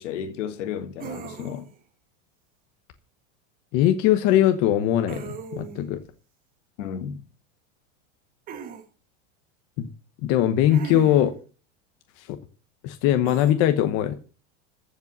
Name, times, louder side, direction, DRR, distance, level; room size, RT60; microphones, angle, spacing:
voice 1, 0.0-1.7 6.8-7.2, left 8 dB, 70° left, 2.2 m, -33 dB
sound 1, 1.0-1.8 5.1-5.9 8.5-8.8 10.7-11.4 13.2-13.5, right 8 dB, 20° right, 1.3 m, -38 dB
voice 2, 3.7-6.0 9.8-9.9 10.2-11.3 12.2-12.4 12.8-14.1, left 11 dB, 35° left, 1.0 m, -21 dB
14.5 x 5.4 x 8.0 m
supercardioid pair, 175°, 38 cm